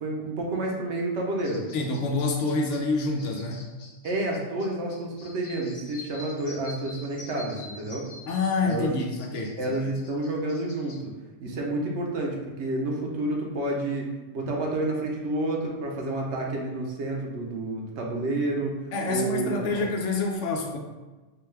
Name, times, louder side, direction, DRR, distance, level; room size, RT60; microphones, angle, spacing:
voice 1, 0.0-1.7 4.0-8.1 8.6-8.9 9.6-11.1 11.4-18.7 19.0-19.9, right 2 dB, 75° right, -1 dB, 1.0 m, -29 dB
sound 1, 1.4-11.0, left 2 dB, 60° left, 0.8 m, -47 dB
voice 2, 1.7-3.7 8.3-9.9 18.9-20.8, left 3 dB, 90° left, 2 dB, 1.0 m, -27 dB
4.5 x 2.3 x 3.2 m, 1.2 s
omnidirectional pair, 1.2 m